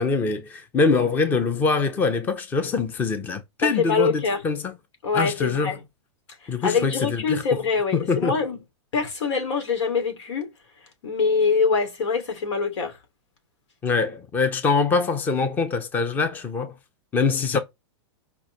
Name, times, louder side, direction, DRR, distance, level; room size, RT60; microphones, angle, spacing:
voice 1, 0.0-4.7 5.1-5.7 6.5-7.4 7.9-8.4 13.8-16.7 17.1-17.6, left 4 dB, 10° left, 0.7 m, -23 dB
voice 2, 3.6-4.4 5.0-5.8 6.6-8.6 8.9-10.5 11.0-13.0, left 5 dB, 80° left, 3.2 m, -24 dB
5.3 x 4.7 x 5.2 m
supercardioid pair, 165°, 15 cm